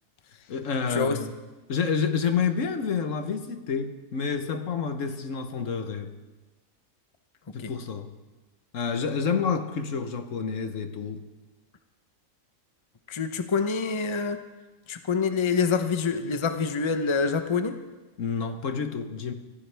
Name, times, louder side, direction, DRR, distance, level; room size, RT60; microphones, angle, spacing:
voice 1, 0.5-1.3 1.7-6.1 7.5-8.1 8.7-11.2 18.2-19.3, left 6 dB, 70° left, 8 dB, 1.4 m, -29 dB
voice 2, 13.1-14.4 14.9-17.8, left 5 dB, 25° left, 8 dB, 0.8 m, -26 dB
25.0 x 15.0 x 3.4 m, 1.2 s
omnidirectional pair, 1.4 m